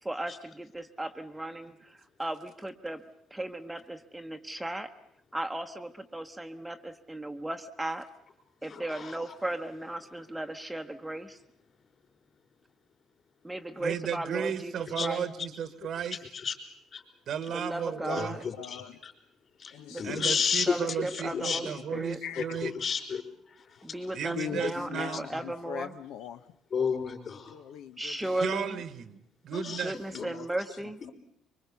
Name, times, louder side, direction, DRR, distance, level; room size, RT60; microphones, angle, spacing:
voice 1, 0.0-3.0 3.3-4.9 5.3-8.1 8.6-11.4 13.4-15.2 17.5-18.4 19.9-20.4 20.7-21.6 21.9-22.2 23.8-25.9 28.0-28.8 29.7-31.0, right 1 dB, 5° right, 6 dB, 0.9 m, -36 dB
voice 2, 8.6-9.3 15.0-15.1 15.8-16.6 16.9-17.0 18.2-19.1 19.6-21.6 22.4-24.0 24.5-24.9 25.3-25.4 26.7-27.6 29.5-30.3 31.0-31.1, left 6 dB, 40° left, 3 dB, 4.5 m, -33 dB
voice 3, 13.8-16.2 17.3-18.4 20.0-22.7 24.1-25.3 28.4-29.9, right 8 dB, 55° right, 14 dB, 1.2 m, -34 dB
voice 4, 18.5-19.0 19.7-20.2 21.3-21.5 21.9-22.4 24.3-26.5 27.5-28.3 30.1-30.5, left 9 dB, 85° left, 9 dB, 0.9 m, -40 dB
24.5 x 23.5 x 7.0 m, 0.72 s
cardioid pair, 120°, 0 cm